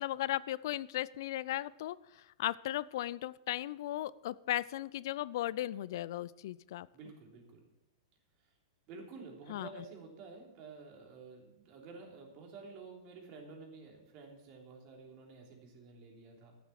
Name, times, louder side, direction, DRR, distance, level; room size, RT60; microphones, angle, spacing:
voice 1, 0.0-6.9 9.5-9.7, left 14 dB, 60° left, 19 dB, 0.4 m, -36 dB
voice 2, 6.9-7.6 8.9-16.6, right 4 dB, 40° right, 1 dB, 3.2 m, -51 dB
13.5 x 8.0 x 5.9 m, 0.92 s
hypercardioid pair, 105°, 2 cm